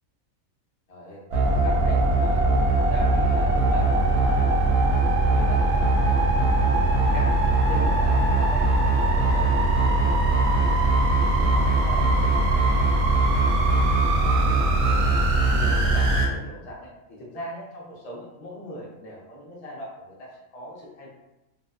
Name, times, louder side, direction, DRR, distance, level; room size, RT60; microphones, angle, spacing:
voice 1, 0.9-5.0 5.3-7.3 7.7-8.6 9.0-10.9 11.4-13.8 14.2-15.1 15.5-16.9 17.2-21.1, equal, 40° left, -4 dB, 0.6 m, -40 dB
sound 1, 1.3-16.3, right 2 dB, 65° right, 0.8 m, -21 dB
2.6 x 2.2 x 2.4 m, 0.96 s
omnidirectional pair, 1.4 m